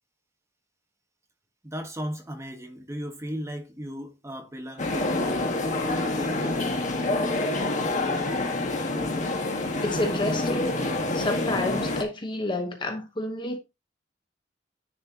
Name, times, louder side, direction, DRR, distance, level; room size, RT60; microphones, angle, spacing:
voice 1, 1.6-5.4 6.2-6.7, equal, 15° right, 1.4 m, -36 dB
sound 1, 4.8-12.0, left 2 dB, 45° left, 1.4 m, -27 dB
voice 2, 9.8-10.8 11.1-13.6, left 2 dB, 25° left, 0.9 m, -29 dB
10.0 x 4.5 x 2.9 m
head